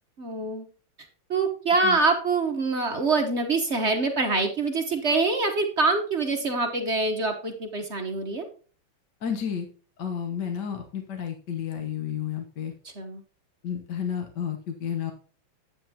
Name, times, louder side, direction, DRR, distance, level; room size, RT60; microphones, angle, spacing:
voice 1, 0.2-0.7 1.3-8.5 13.0-13.2, right 3 dB, 45° right, 4 dB, 1.0 m, -25 dB
voice 2, 9.2-9.7 10.0-12.7 13.6-15.1, left 8 dB, 55° left, 4 dB, 1.6 m, -31 dB
9.9 x 8.9 x 2.8 m, 0.40 s
omnidirectional pair, 2.4 m